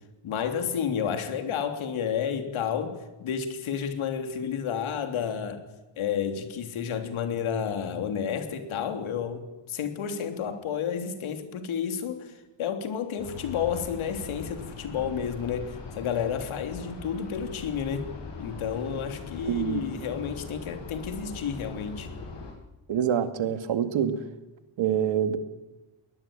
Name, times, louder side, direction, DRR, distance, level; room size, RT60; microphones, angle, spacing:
voice 1, 0.2-5.7 6.0-12.3 12.6-18.1 18.4-22.1, left 7 dB, 75° left, 3.4 m, -31 dB
sound 1, 13.2-22.5, left 4 dB, 60° left, 8.0 m, -41 dB
voice 2, 19.4-19.8 22.9-24.2 24.8-25.4, right 9 dB, 65° right, 2.2 m, -26 dB
21.5 x 19.0 x 8.9 m
cardioid pair, 140°, 49 cm